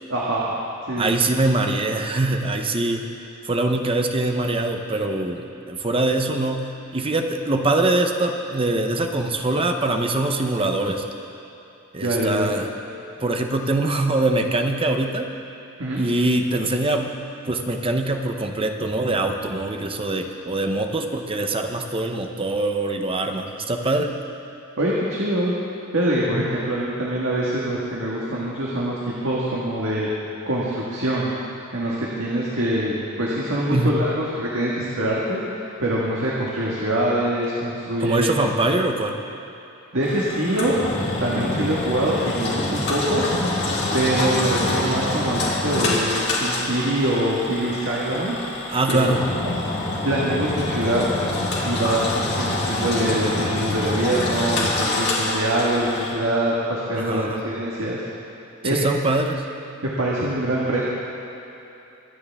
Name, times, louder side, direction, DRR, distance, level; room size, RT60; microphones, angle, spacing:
voice 1, 0.1-0.5 0.9-1.2 12.0-12.5 15.8-16.0 24.8-25.5 25.9-30.1 30.4-31.3 31.7-38.3 39.9-40.8 41.2-43.2 43.9-48.5 48.9-49.0 50.0-51.0 51.6-58.0 58.6-58.9 59.8-60.8, right 1 dB, 65° right, -6 dB, 1.7 m, -24 dB
voice 2, 0.9-3.1 3.4-11.0 11.9-12.7 13.2-15.3 15.9-17.1 17.4-24.1 26.3-26.5 33.7-34.0 38.0-39.2 41.4-41.5 44.0-44.1 48.7-49.2 51.8-52.3 53.8-53.9 56.9-57.4 58.6-59.4, right 2 dB, 25° right, 4 dB, 0.8 m, -23 dB
Engine, 40.0-56.1, left 2 dB, 55° left, 2.6 m, -26 dB
23.5 x 9.7 x 3.6 m, 3.0 s
head